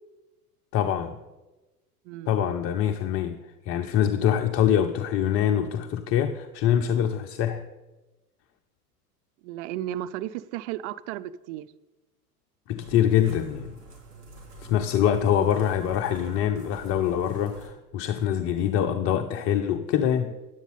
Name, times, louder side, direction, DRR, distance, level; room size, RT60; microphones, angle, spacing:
voice 1, 0.7-1.2 2.3-7.6 12.7-13.8 14.6-20.3, left 9 dB, 30° left, 0.5 m, -24 dB
voice 2, 2.1-2.4 9.4-11.7, right 13 dB, 50° right, 0.5 m, -34 dB
sound 1, 12.8-17.7, right 2 dB, 75° right, 3.6 m, -46 dB
10.5 x 8.0 x 4.1 m
hypercardioid pair, 95°, 47 cm